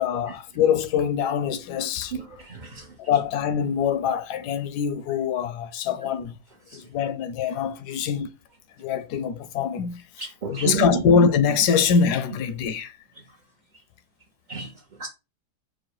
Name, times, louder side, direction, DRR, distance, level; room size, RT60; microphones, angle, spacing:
voice 1, 0.0-2.1 3.0-6.4 6.7-8.3 8.8-12.9, left 6 dB, 75° left, 1.1 m, -24 dB
voice 2, 2.1-3.0 6.7-7.1 7.9-8.0 10.2-11.0 14.5-14.7 15.0-15.1, right 7 dB, 60° right, 0.4 m, -32 dB
4.8 x 2.1 x 4.4 m
omnidirectional pair, 1.8 m